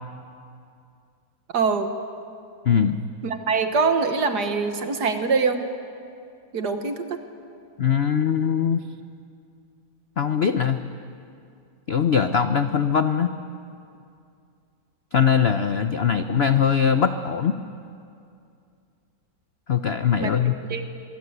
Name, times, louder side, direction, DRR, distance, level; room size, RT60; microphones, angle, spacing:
voice 1, 1.5-1.9 3.2-5.6 6.5-7.2 20.2-20.8, right 4 dB, 60° right, 7 dB, 1.9 m, -24 dB
voice 2, 2.6-3.0 7.8-8.8 10.2-10.8 11.9-13.3 15.1-17.5 19.7-20.6, left 7 dB, 60° left, 9 dB, 0.6 m, -21 dB
24.5 x 23.0 x 8.2 m, 2.4 s
omnidirectional pair, 2.1 m